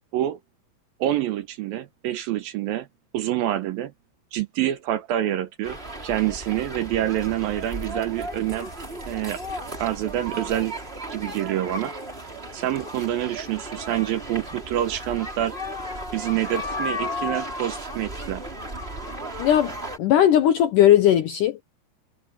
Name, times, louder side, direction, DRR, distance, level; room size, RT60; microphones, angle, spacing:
voice 1, 1.0-2.9 3.1-3.9 4.3-5.8 6.0-8.7 9.1-9.4 9.8-10.8 11.1-11.9 12.5-15.6 16.1-18.4, right 13 dB, 75° right, 2.4 m, -27 dB
sound 1, 5.6-20.0, equal, 15° right, 4.1 m, -34 dB
voice 2, 19.4-21.6, left 11 dB, 75° left, 1.9 m, -18 dB
omnidirectional pair, 4.8 m